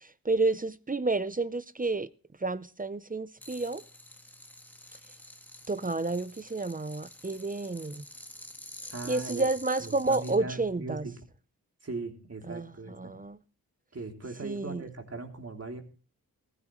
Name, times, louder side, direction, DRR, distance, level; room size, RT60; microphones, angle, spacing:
voice 1, 0.0-2.1 2.4-3.8 5.7-8.1 9.1-11.1 12.5-13.4 14.4-14.8, right 3 dB, 25° right, 0.7 m, -30 dB
sound 1, 3.4-10.4, left 1 dB, 5° left, 1.8 m, -48 dB
voice 2, 8.9-9.5 9.8-11.1 11.8-13.1 13.9-15.8, right 3 dB, 40° right, 3.2 m, -39 dB
15.5 x 15.0 x 3.1 m
cardioid pair, 55°, 36 cm